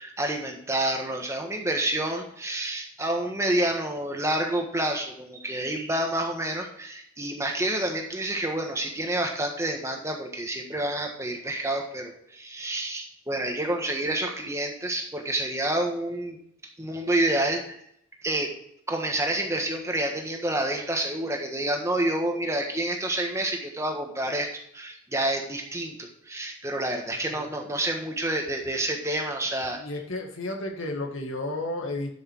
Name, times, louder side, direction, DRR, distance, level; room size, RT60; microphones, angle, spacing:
voice 1, 0.0-16.4 16.8-17.8 18.2-18.5 18.9-24.5 24.7-29.8, right 1 dB, 15° right, 2 dB, 1.5 m, -28 dB
voice 2, 29.7-32.1, left 2 dB, 75° left, 3 dB, 1.8 m, -32 dB
11.0 x 6.3 x 4.6 m, 0.70 s
head